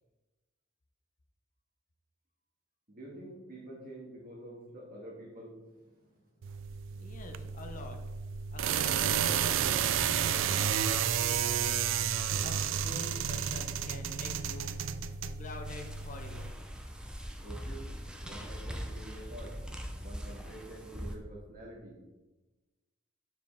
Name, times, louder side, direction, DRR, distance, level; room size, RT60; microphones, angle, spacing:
voice 1, 2.9-6.3 17.4-17.9 18.2-19.6 20.0-22.0, right 1 dB, 45° right, -3 dB, 1.8 m, -48 dB
sound 1, 6.4-16.5, right 8 dB, 70° right, 0.3 m, -31 dB
voice 2, 6.9-8.0 8.5-11.9 12.4-14.7 15.3-16.6, left 2 dB, 40° left, 4 dB, 0.6 m, -47 dB
sound 2, 15.6-21.2, equal, 5° right, 0.4 m, -42 dB
7.0 x 4.6 x 3.5 m, 1.1 s
head